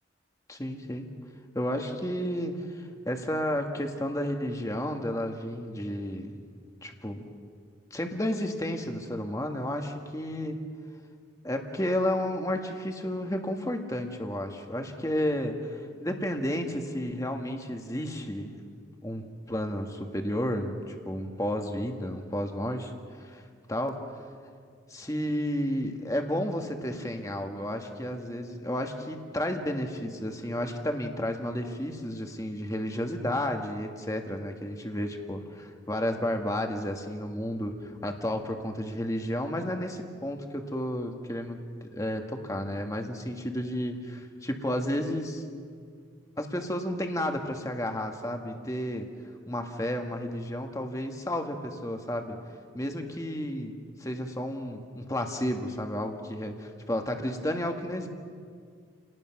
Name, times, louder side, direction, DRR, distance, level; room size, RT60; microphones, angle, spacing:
voice 1, 0.5-1.1 1.5-6.4 6.8-7.3 7.9-10.6 11.4-18.6 19.0-22.9 23.2-23.4 23.7-24.0 24.9-45.4 46.4-49.1 49.5-52.4 52.7-58.1, left 1 dB, 15° left, 4 dB, 1.6 m, -32 dB
30.0 x 19.0 x 6.0 m, 2.1 s
head